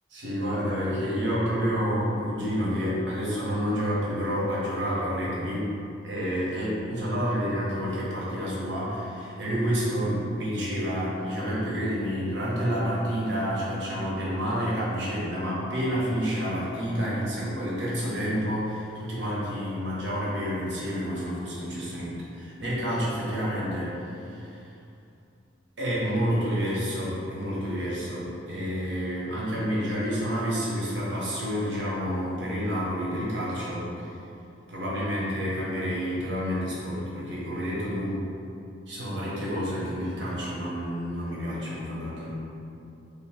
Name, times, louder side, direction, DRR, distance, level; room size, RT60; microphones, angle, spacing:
voice 1, 0.1-5.7 6.0-24.6 25.8-34.1 34.7-38.3 38.9-42.4, equal, 80° right, -7 dB, 0.9 m, -29 dB
3.1 x 2.1 x 3.4 m, 2.6 s
head